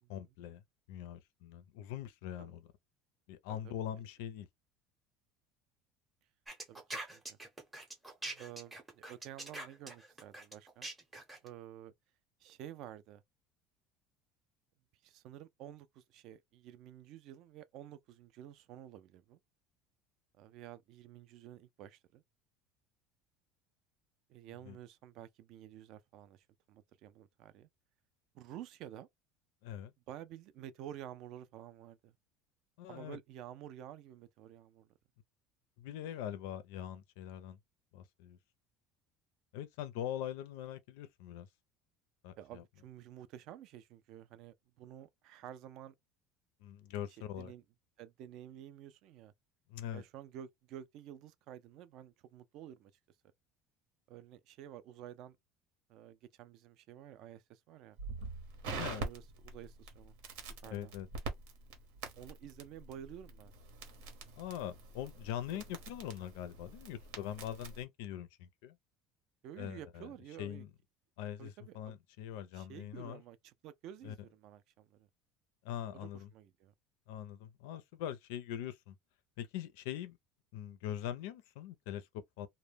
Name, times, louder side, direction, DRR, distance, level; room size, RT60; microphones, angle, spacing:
voice 1, 0.1-0.6 0.9-2.7 3.3-4.5 24.7-24.8 29.6-29.9 32.8-33.2 35.8-37.6 37.9-38.4 39.5-41.5 42.2-42.6 46.6-47.5 49.7-50.0 58.6-59.1 60.7-61.1 64.4-68.8 69.6-70.1 70.4-70.7 71.2-73.2 74.0-74.1 75.6-76.3 77.1-79.0 79.4-80.2 80.5-82.5, left 11 dB, 75° left, 0.4 m, -42 dB
sound 1, 6.5-11.5, right 2 dB, 10° right, 0.6 m, -44 dB
voice 2, 6.7-7.4 8.3-10.9 11.4-11.9 12.4-13.2 15.0-19.4 20.4-22.2 24.3-27.7 28.3-29.1 30.1-32.2 32.9-34.9 42.4-45.9 47.4-47.6 48.0-49.3 49.9-52.9 54.1-55.4 55.9-58.0 58.7-60.1 60.6-60.9 62.2-63.5 65.5-65.6 69.4-70.6 71.4-71.9 72.5-75.1 75.9-76.7, right 11 dB, 45° right, 0.3 m, -51 dB
Crackle, 58.0-67.8, right 3 dB, 85° right, 0.9 m, -45 dB
2.1 x 2.1 x 3.2 m
cardioid pair, 175°, 0 cm